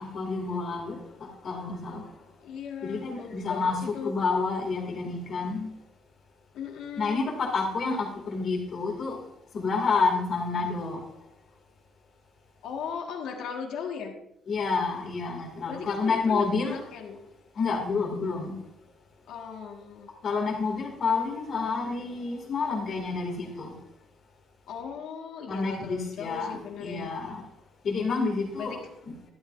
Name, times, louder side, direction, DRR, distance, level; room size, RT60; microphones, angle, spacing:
voice 1, 0.0-2.1 2.8-5.7 7.0-9.2 9.5-11.0 14.5-16.8 17.6-18.6 20.2-23.7 25.5-27.4 27.8-28.8 29.1-29.2, left 4 dB, 45° left, 2.4 m, -29 dB
voice 2, 2.4-4.1 6.5-7.2 12.6-14.2 15.7-17.3 19.3-20.1 24.7-27.1 28.6-29.0, left 6 dB, 70° left, 1.7 m, -38 dB
12.0 x 11.5 x 2.6 m
cardioid pair, 165°, 0 cm